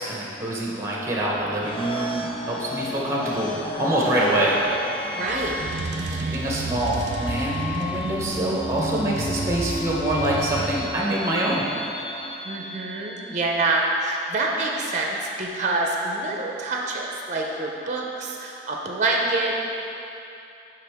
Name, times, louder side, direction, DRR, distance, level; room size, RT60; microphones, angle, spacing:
voice 1, 0.0-4.6 6.1-11.6, right 1 dB, 15° right, -4 dB, 0.8 m, -25 dB
sound 1, 0.9-13.5, left 1 dB, 30° left, 0.6 m, -33 dB
voice 2, 5.1-5.6 12.4-19.5, right 2 dB, 45° right, 0 dB, 0.6 m, -26 dB
sound 2, 5.3-11.3, right 3 dB, 90° right, 0.5 m, -31 dB
9.8 x 3.5 x 3.5 m, 2.8 s
head